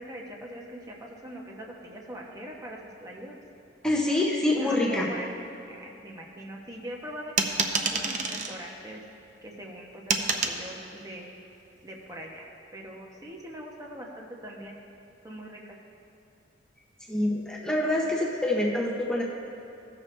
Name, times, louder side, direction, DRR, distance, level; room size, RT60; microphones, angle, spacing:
voice 1, 0.0-3.4 4.6-9.0 9.4-11.4 11.8-12.5 12.7-14.8 15.2-15.7, right 1 dB, 20° right, -2 dB, 1.0 m, -42 dB
voice 2, 3.8-5.1 17.1-19.2, left 1 dB, 5° left, -4 dB, 0.8 m, -26 dB
sound 1, 7.4-8.6 10.1-10.6, right 4 dB, 45° right, 0.6 m, -27 dB
16.0 x 6.8 x 3.3 m, 2.7 s
head